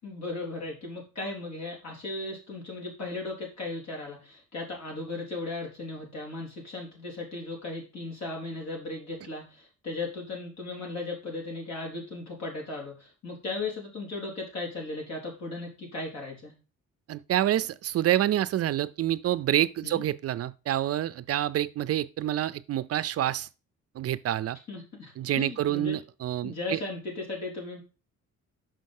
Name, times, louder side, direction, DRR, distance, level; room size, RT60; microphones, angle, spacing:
voice 1, 0.0-16.5 19.8-20.0 24.7-26.0 26.4-27.8, left 2 dB, 60° left, 4.2 m, -36 dB
voice 2, 17.1-23.5 24.0-24.6 25.2-26.8, right 12 dB, 50° right, 0.4 m, -27 dB
6.2 x 5.3 x 6.4 m
cardioid pair, 165°, 31 cm